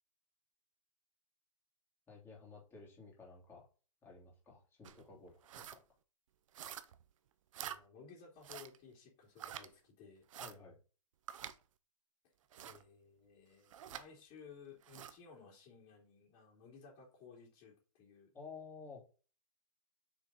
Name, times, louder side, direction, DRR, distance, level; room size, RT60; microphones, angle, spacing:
voice 1, 2.1-3.7 4.0-5.8 10.4-10.8 18.3-19.0, left 4 dB, 10° left, -3 dB, 3.1 m, -53 dB
sound 1, 4.8-5.0 5.4-5.8 6.5-7.0 7.5-7.8 8.4-8.8 9.4-9.7 10.3-10.5 11.3-11.6 12.5-12.8 13.7-14.1 14.8-15.2, right 10 dB, 65° right, 0.8 m, -47 dB
voice 2, 7.6-10.3 12.6-18.3, left 5 dB, 30° left, -5 dB, 3.1 m, -57 dB
6.5 x 6.2 x 4.1 m, 0.35 s
hypercardioid pair, 160°, 18 cm